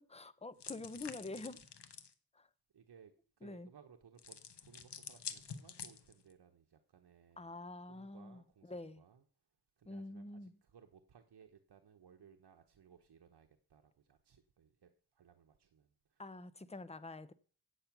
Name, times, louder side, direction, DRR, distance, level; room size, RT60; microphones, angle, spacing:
voice 1, 0.0-1.6 2.3-2.5 3.4-3.7 7.4-9.0 9.9-10.6 16.2-17.3, left 2 dB, 15° left, 0.7 m, -47 dB
sound 1, 0.6-2.1 4.2-6.3, left 7 dB, 85° left, 1.0 m, -48 dB
voice 2, 2.7-3.1 3.4-7.5 7.9-9.2 9.8-14.9 15.2-16.2, right 7 dB, 75° right, 1.0 m, -63 dB
8.6 x 8.3 x 5.9 m
wide cardioid pair, 90°, 40 cm